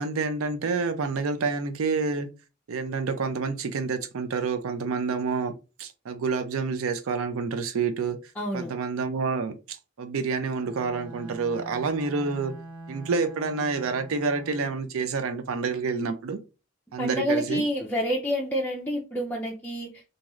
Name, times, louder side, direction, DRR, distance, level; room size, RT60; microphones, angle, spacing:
voice 1, 0.0-2.3 2.7-5.5 5.8-12.5 12.9-16.4 16.9-17.6, right 4 dB, 85° right, 0.4 m, -28 dB
voice 2, 8.4-8.7 17.0-20.0, equal, 10° left, 0.4 m, -28 dB
Bowed string instrument, 10.6-14.9, right 2 dB, 60° right, 1.5 m, -44 dB
2.6 x 2.4 x 3.0 m
head